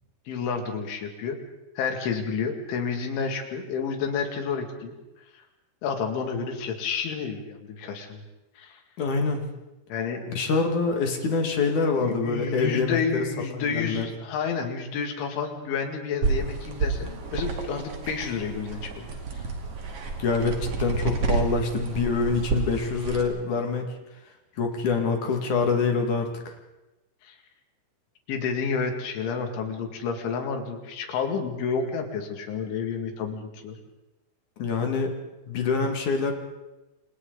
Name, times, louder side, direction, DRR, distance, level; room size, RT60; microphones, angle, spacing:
voice 1, 0.3-1.4 1.8-4.9 5.8-8.2 8.6-8.8 9.9-10.3 12.0-19.1 27.2-27.4 28.3-33.8, left 5 dB, 90° left, 4 dB, 4.8 m, -30 dB
voice 2, 9.0-9.4 10.3-13.2 13.7-14.1 20.2-23.9 24.6-26.5 34.6-35.1 35.5-36.3, left 4 dB, 50° left, 3 dB, 3.0 m, -25 dB
sound 1, 16.2-23.2, right 4 dB, 40° right, 2.5 m, -30 dB
29.5 x 26.5 x 4.0 m, 1.0 s
omnidirectional pair, 5.3 m